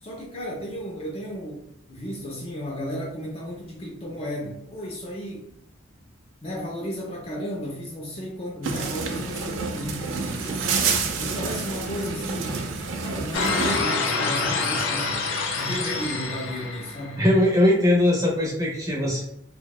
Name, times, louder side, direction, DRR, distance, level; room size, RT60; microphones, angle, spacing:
voice 1, 0.0-5.5 6.4-10.9 11.2-12.7 13.0-15.2 15.6-17.2, equal, 30° left, -1 dB, 0.4 m, -34 dB
sound 1, 8.6-13.8, right 4 dB, 80° right, 0.4 m, -28 dB
sound 2, 13.3-17.4, left 4 dB, 90° left, 0.4 m, -27 dB
voice 2, 17.2-19.2, left 1 dB, 15° right, -3 dB, 0.6 m, -20 dB
2.7 x 2.1 x 2.2 m, 0.75 s
head